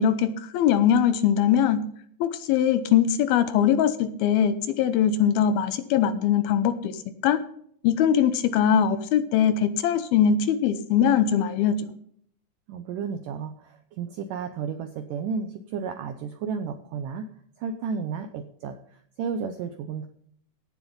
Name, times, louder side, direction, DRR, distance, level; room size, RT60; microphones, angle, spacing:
voice 1, 0.0-1.8 2.2-7.0 7.2-7.4 7.8-11.7, left 9 dB, 75° left, 11 dB, 2.5 m, -21 dB
voice 2, 12.7-17.3 17.6-20.1, right 6 dB, 80° right, 8 dB, 1.9 m, -33 dB
17.0 x 7.4 x 5.3 m, 0.64 s
omnidirectional pair, 4.8 m